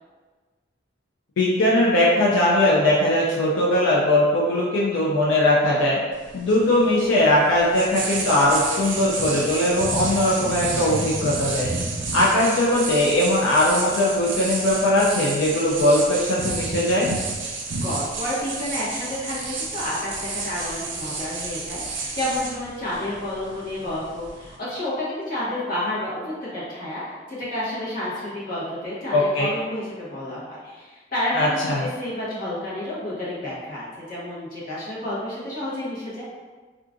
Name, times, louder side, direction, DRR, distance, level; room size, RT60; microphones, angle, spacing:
voice 1, 1.4-6.0 6.3-11.7 12.1-17.1 29.1-29.5 31.3-31.9, left 1 dB, 85° left, -4 dB, 0.4 m, -20 dB
sound 1, 6.1-24.6, right 3 dB, 80° right, 0.5 m, -31 dB
voice 2, 17.8-27.0 27.3-31.5 31.8-36.2, left 1 dB, 45° left, -8 dB, 1.0 m, -30 dB
3.7 x 2.4 x 2.5 m, 1.4 s
head